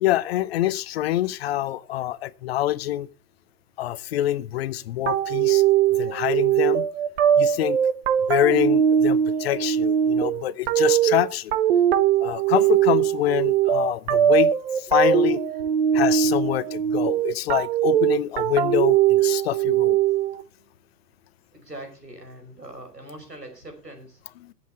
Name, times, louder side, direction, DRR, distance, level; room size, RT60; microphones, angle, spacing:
voice 1, 0.0-3.1 3.8-5.6 6.0-6.9 7.4-7.8 8.3-11.5 12.2-15.4 15.9-20.0 24.4-24.5, left 13 dB, 40° left, 0.7 m, -25 dB
sound 1, 5.1-20.4, right 10 dB, 40° right, 1.1 m, -21 dB
voice 2, 15.6-16.0 21.5-24.2, right 1 dB, 90° right, 5.3 m, -42 dB
22.0 x 7.9 x 3.5 m
figure-of-eight pair, 110°, 47 cm